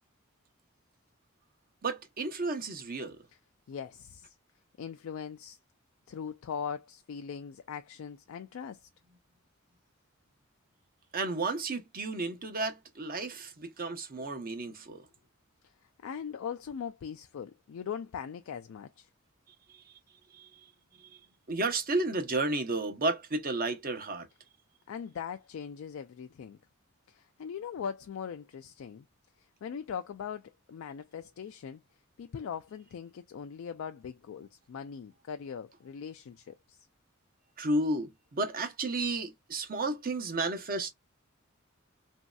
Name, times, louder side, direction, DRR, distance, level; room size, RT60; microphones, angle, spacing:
voice 1, 1.8-3.2 11.1-15.0 19.7-19.8 20.3-20.5 21.0-21.2 21.5-24.3 37.6-40.9, right 2 dB, 45° right, 0.7 m, -32 dB
voice 2, 3.7-4.3 4.8-5.6 6.1-8.9 14.9-15.0 16.0-19.1 24.9-26.6 27.1-29.1 29.6-31.8 32.2-36.8, left 7 dB, 70° left, 0.3 m, -40 dB
3.0 x 2.6 x 2.3 m
head